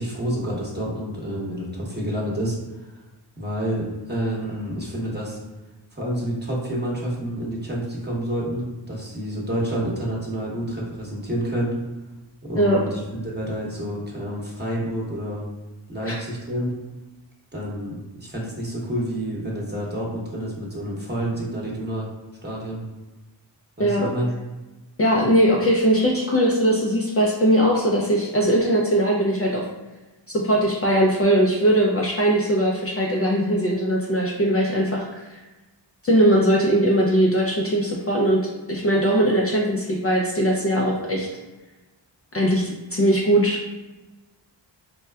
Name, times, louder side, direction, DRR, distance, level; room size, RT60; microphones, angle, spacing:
voice 1, 0.0-2.9 3.4-5.4 5.9-11.8 12.4-15.5 15.9-16.7 17.5-22.1 22.4-22.8 23.8-24.3, right 1 dB, 20° right, -4 dB, 1.0 m, -28 dB
voice 2, 23.8-24.1 25.0-29.7 30.3-35.4 36.0-38.4 38.7-41.3 42.3-43.7, right 1 dB, 30° left, -2 dB, 0.4 m, -20 dB
4.1 x 2.2 x 2.3 m, 1.1 s
cardioid pair, 50°, 47 cm